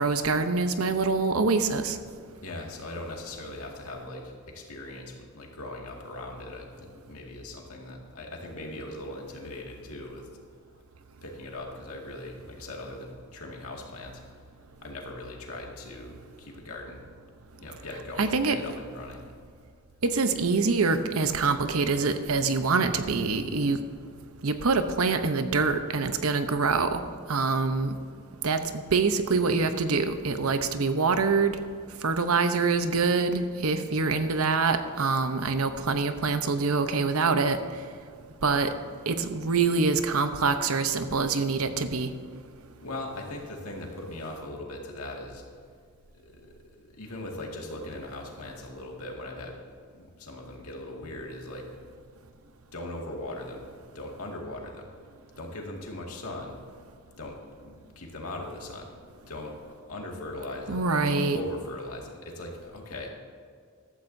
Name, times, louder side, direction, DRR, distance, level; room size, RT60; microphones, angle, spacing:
voice 1, 0.0-2.0 18.2-18.6 20.0-23.8 24.4-27.0 27.3-27.9 28.4-28.6 28.9-31.6 32.0-37.6 38.4-38.7 39.1-42.1 60.7-61.4, right 4 dB, 70° right, 8 dB, 0.8 m, -25 dB
voice 2, 2.4-10.3 11.2-14.2 14.8-17.1 17.5-19.2 42.7-45.4 46.2-49.6 49.9-51.7 52.7-53.6 53.9-54.9 55.4-56.6 57.2-57.4 57.6-58.9 59.3-59.6 59.9-63.1, left 1 dB, 80° left, 0 dB, 2.1 m, -39 dB
15.0 x 12.5 x 2.7 m, 2.1 s
head